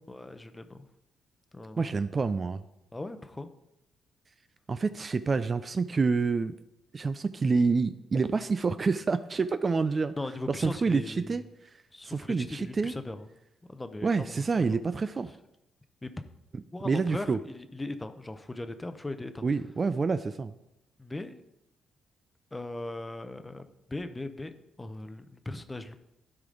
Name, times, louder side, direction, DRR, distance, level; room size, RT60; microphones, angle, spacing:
voice 1, 0.1-0.9 1.5-1.9 2.9-3.5 10.2-11.4 11.9-13.3 13.7-14.5 16.0-16.1 16.7-19.4 21.0-21.4 22.5-24.5 24.8-25.9, left 2 dB, 15° left, 10 dB, 0.7 m, -39 dB
voice 2, 1.8-2.6 4.7-6.5 6.9-10.1 10.5-11.4 12.0-12.9 14.0-15.3 16.5-17.4 19.4-20.5, right 4 dB, 35° right, 12 dB, 0.4 m, -28 dB
12.5 x 5.0 x 3.9 m, 0.88 s
cardioid pair, 90°, 0 cm